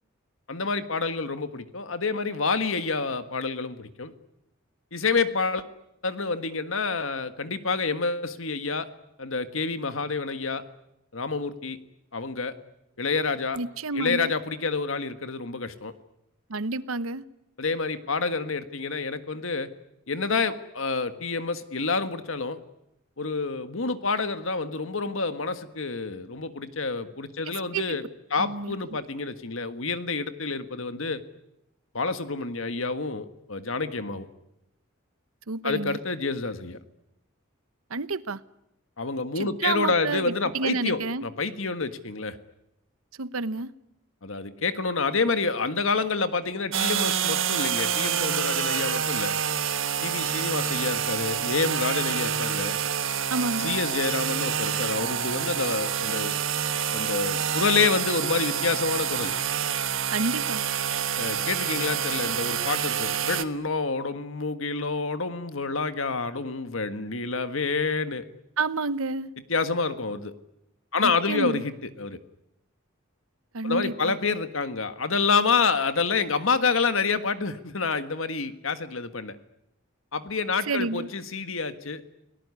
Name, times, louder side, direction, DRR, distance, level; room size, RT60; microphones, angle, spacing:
voice 1, 0.5-4.1 4.9-5.6 6.0-8.9 9.2-10.6 11.1-11.8 12.1-12.5 13.0-13.6 13.9-15.9 17.6-19.7 20.1-22.6 23.2-28.0 28.3-31.2 31.9-34.3 35.6-36.8 39.0-42.4 44.2-49.3 50.0-52.7 53.6-56.3 56.9-59.3 61.2-68.2 69.5-70.3 70.9-71.7 72.0-72.2 73.6-79.4 80.1-82.0, left 4 dB, 70° left, 10 dB, 1.7 m, -28 dB
voice 2, 13.6-14.3 16.5-17.2 27.7-28.0 28.4-28.7 35.5-36.0 37.9-38.4 39.4-41.2 43.2-43.7 53.3-53.8 60.1-60.6 68.6-69.3 71.0-71.6 73.5-74.2 80.7-81.1, right 3 dB, 85° right, 15 dB, 1.0 m, -29 dB
sound 1, 46.7-63.4, right 8 dB, 70° right, 1.4 m, -27 dB
29.5 x 18.5 x 9.8 m, 0.86 s
head